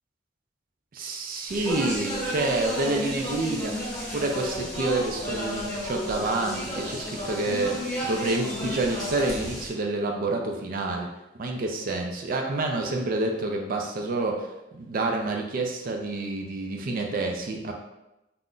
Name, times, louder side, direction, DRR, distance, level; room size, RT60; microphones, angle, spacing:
voice 1, 0.9-3.8 4.1-11.1 11.3-17.7, right 2 dB, 50° right, 2 dB, 0.4 m, -28 dB
Speech, 1.5-9.7, equal, 5° left, 1.2 m, -32 dB
2.4 x 2.1 x 3.6 m, 0.94 s
head